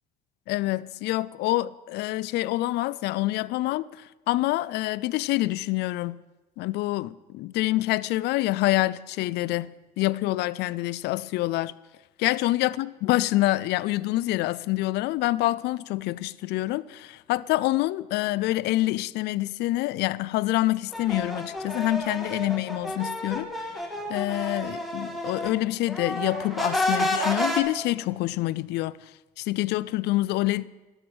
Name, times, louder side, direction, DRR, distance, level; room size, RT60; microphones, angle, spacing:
voice 1, 0.5-6.2 6.6-9.7 10.0-11.7 12.2-23.7 24.1-29.0 29.4-30.7, left 17 dB, 80° left, 0.4 m, -26 dB
sound 1, 20.9-25.6 25.9-27.6, left 1 dB, ahead, 1.5 m, -30 dB
11.5 x 7.7 x 6.1 m
cardioid pair, 110°, 17 cm